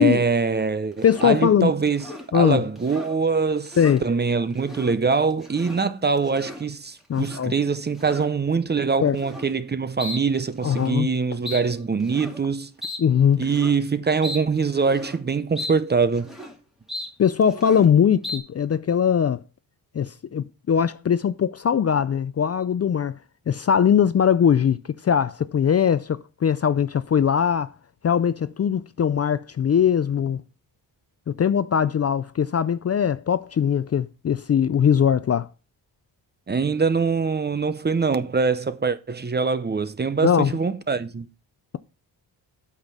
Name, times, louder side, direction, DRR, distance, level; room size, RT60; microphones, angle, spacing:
voice 1, 0.0-2.1 2.3-12.7 13.4-16.3 36.5-41.3, right 5 dB, 25° right, 0.6 m, -23 dB
voice 2, 1.0-1.7 2.3-2.6 3.8-4.0 7.1-7.5 9.0-9.2 10.6-11.1 13.0-13.5 17.2-19.4 19.9-23.2 23.5-24.8 25.0-27.7 28.0-30.4 31.3-35.5 40.2-40.5, left 8 dB, 35° left, 0.4 m, -20 dB
sound 1, 1.0-1.4 1.9-2.3 2.8-3.2 3.6-4.0 4.5-5.0 5.3-5.8 6.2-6.7 7.1-7.5 8.0-8.3 9.1-9.5 10.0-10.2 10.5-10.9 11.5-11.6 12.0-12.4 12.8-13.0 13.4-13.8 14.2-14.4 14.8-15.2 15.6-15.7 16.0-16.5 16.9-17.1 17.4-17.9 18.2-18.4, left 1 dB, ahead, 2.2 m, -36 dB
8.6 x 5.8 x 6.0 m
wide cardioid pair, 125°, 43 cm